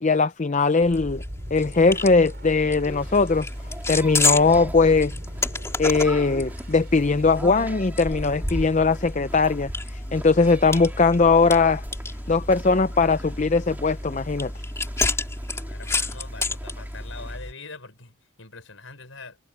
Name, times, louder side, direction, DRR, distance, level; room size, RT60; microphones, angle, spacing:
voice 1, 0.0-1.2 1.5-3.5 3.9-5.1 5.8-11.8 12.3-14.5, left 4 dB, 35° left, 0.5 m, -20 dB
sound 1, 0.8-7.4, equal, 50° right, 7.5 m, -43 dB
sound 2, 0.9-17.5, left 2 dB, 15° left, 2.9 m, -31 dB
sound 3, 2.8-17.4, equal, 10° right, 3.9 m, -40 dB
voice 2, 15.5-19.4, left 3 dB, 80° left, 5.6 m, -43 dB
head